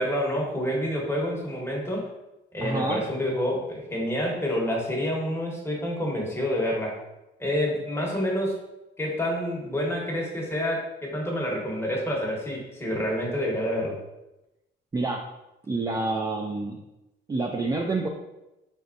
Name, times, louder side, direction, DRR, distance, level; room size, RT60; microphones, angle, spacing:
voice 1, 0.0-2.1 2.5-7.0 7.4-8.6 9.0-14.0, equal, 10° left, -2 dB, 1.2 m, -28 dB
voice 2, 2.6-3.0 14.9-15.2 15.7-16.8 17.3-18.1, right 3 dB, 20° right, 2 dB, 0.4 m, -27 dB
3.9 x 3.5 x 2.5 m, 0.95 s
cardioid pair, 90°, 20 cm